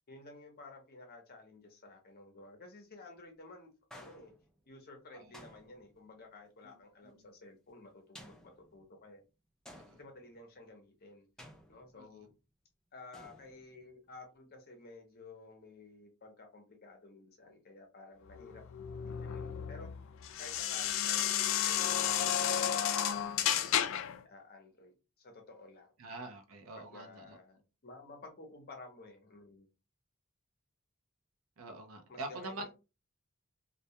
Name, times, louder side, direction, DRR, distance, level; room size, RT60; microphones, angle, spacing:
voice 1, 0.1-4.3 4.7-9.2 10.0-11.3 11.7-12.3 12.9-18.6 19.0-19.9 20.4-24.0 24.2-25.9 26.8-29.7 32.1-32.7, left 2 dB, 50° left, 0.7 m, -53 dB
sound 1, 3.9-4.7 5.3-6.2 8.1-9.0 9.7-10.4 11.4-12.2 13.1-13.9, equal, 5° left, 0.5 m, -55 dB
sound 2, 18.3-24.2, left 10 dB, 65° left, 0.3 m, -32 dB
voice 2, 26.0-27.4 31.6-32.7, right 2 dB, 80° right, 0.5 m, -45 dB
2.2 x 2.1 x 2.7 m
head